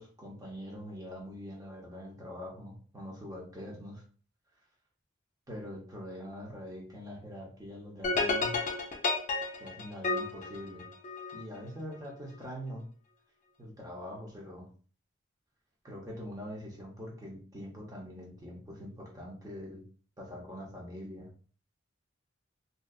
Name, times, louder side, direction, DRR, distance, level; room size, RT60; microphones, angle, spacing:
voice 1, 0.0-4.0 5.5-8.6 9.6-10.9 11.3-12.9 13.6-14.7 15.8-19.8 20.2-21.3, equal, 20° right, -3 dB, 0.7 m, -43 dB
sound 1, 8.0-11.4, left 3 dB, 40° left, 0.4 m, -31 dB
2.6 x 2.3 x 2.3 m, 0.42 s
head